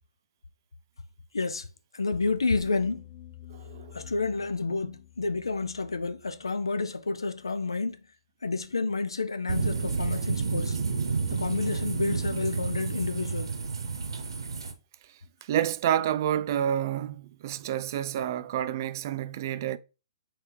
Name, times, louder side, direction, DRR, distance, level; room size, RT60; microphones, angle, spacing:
voice 1, 1.3-1.7 1.9-3.1 3.9-8.0 8.4-10.8 11.3-13.5, left 3 dB, 90° left, 0.4 m, -30 dB
sound 1, 2.6-7.8, left 13 dB, 35° left, 0.6 m, -50 dB
voice 2, 3.5-4.0 15.4-19.8, right 10 dB, 50° right, 0.3 m, -29 dB
sound 2, 9.5-14.7, right 5 dB, 80° right, 0.8 m, -30 dB
3.3 x 3.2 x 4.6 m
hypercardioid pair, 130°, 2 cm